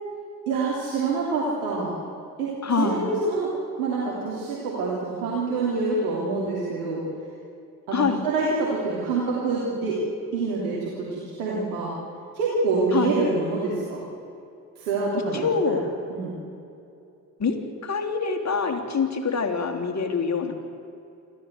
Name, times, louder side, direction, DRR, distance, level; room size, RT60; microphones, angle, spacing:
voice 1, 0.5-1.9 2.4-3.5 3.8-7.0 7.9-10.0 10.3-11.9 12.3-14.1 14.8-15.8 16.1-16.3, right 3 dB, 80° right, -6 dB, 3.1 m, -26 dB
voice 2, 2.6-3.2 7.9-8.2 12.9-13.1 15.3-15.8 17.4-20.6, left 5 dB, 40° left, 3 dB, 3.2 m, -25 dB
28.0 x 13.0 x 8.0 m, 2.7 s
hypercardioid pair, 40°, 43 cm